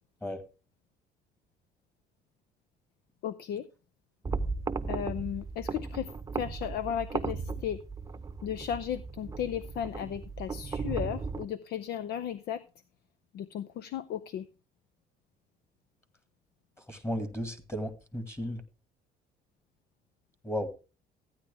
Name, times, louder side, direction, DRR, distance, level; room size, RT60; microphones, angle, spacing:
voice 1, 3.2-3.7 4.9-7.8 8.4-12.6 13.3-14.5, left 9 dB, 70° left, 0.7 m, -35 dB
sound 1, 4.2-11.4, right 4 dB, 20° right, 0.8 m, -36 dB
voice 2, 16.9-18.6 20.4-20.7, equal, 15° left, 2.0 m, -34 dB
14.5 x 9.7 x 3.5 m
cardioid pair, 110°, 17 cm